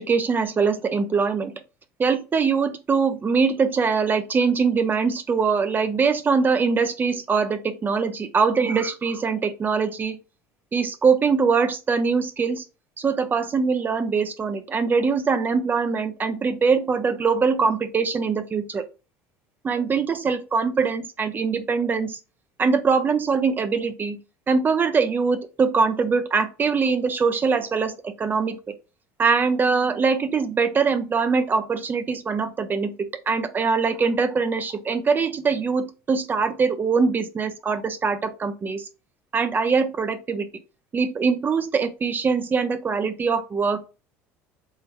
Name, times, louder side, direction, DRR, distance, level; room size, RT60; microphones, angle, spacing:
voice 1, 0.0-1.5 2.0-10.2 10.7-12.6 13.0-18.8 19.6-22.2 22.6-24.2 24.5-28.7 29.2-38.9 39.3-40.5 40.9-43.9, right 5 dB, 30° right, 0.6 m, -22 dB
3.7 x 3.3 x 3.0 m
supercardioid pair, 85°, 7 cm